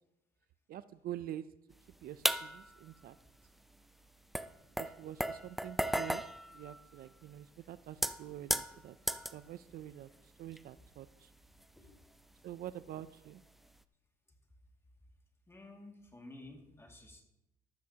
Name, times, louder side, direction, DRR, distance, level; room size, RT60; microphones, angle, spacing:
voice 1, 0.7-1.5 2.0-3.2 4.8-6.2 6.5-9.0 9.3-10.1 10.4-11.3 12.4-13.4, right 12 dB, 60° right, 14 dB, 0.5 m, -46 dB
sound 1, 2.2-2.8 3.7-3.8 4.3-7.4 7.9-9.4 9.9-10.2 10.5-10.6 11.6-12.3 12.7-12.9 13.6-13.8, equal, ahead, 0.4 m, -35 dB
voice 2, 15.5-17.2, left 2 dB, 15° left, 2 dB, 2.2 m, -53 dB
15.0 x 12.5 x 2.9 m, 0.84 s
cardioid pair, 110°, 17 cm